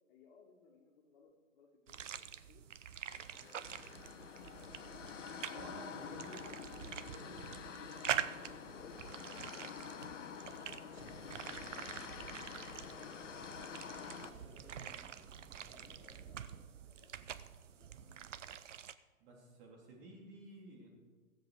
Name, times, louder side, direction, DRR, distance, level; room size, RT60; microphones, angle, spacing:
voice 1, 0.1-2.7 3.1-6.7 8.0-8.4 8.7-10.0 10.4-13.5 14.1-15.3 15.6-17.2 17.7-18.7, left 4 dB, 40° left, 1 dB, 2.2 m, -64 dB
sound 1, 1.9-18.9, right 9 dB, 65° right, 0.7 m, -46 dB
sound 2, 3.0-14.3, left 7 dB, 65° left, 1.0 m, -48 dB
voice 2, 5.5-6.5 7.1-7.4 14.4-14.8 19.2-20.9, right 2 dB, 40° right, -1 dB, 3.4 m, -53 dB
sound 3, 10.9-16.3, right 1 dB, 15° right, 2.2 m, -60 dB
16.0 x 7.7 x 5.0 m, 1.4 s
figure-of-eight pair, 115°, 40 cm